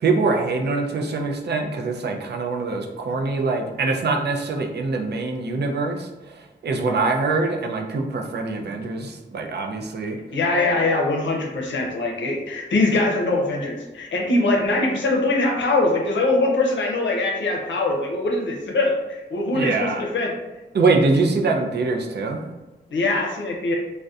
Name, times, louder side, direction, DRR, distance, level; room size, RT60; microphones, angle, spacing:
voice 1, 0.0-6.1 6.6-10.2 19.5-20.0 20.7-22.5, right 3 dB, 65° right, 3 dB, 0.4 m, -23 dB
voice 2, 10.3-20.3 22.9-23.8, left 2 dB, 85° left, 0 dB, 0.5 m, -22 dB
2.5 x 2.1 x 2.3 m, 1.1 s
cardioid pair, 50°, 19 cm